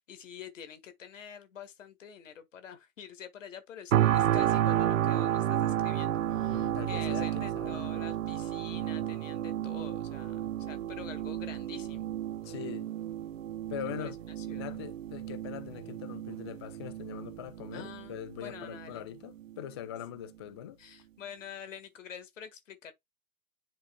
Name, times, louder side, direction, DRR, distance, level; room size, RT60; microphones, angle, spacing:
voice 1, 0.1-12.1 14.0-14.8 17.7-19.0 20.8-22.9, left 8 dB, 60° left, 1.7 m, -47 dB
sound 1, 3.9-18.9 19.4-19.6, right 12 dB, 65° right, 0.6 m, -31 dB
voice 2, 6.5-7.8 12.4-12.9 13.7-14.2 14.5-20.8, left 11 dB, 20° left, 0.3 m, -42 dB
10.0 x 4.9 x 2.3 m
figure-of-eight pair, 105°, 43 cm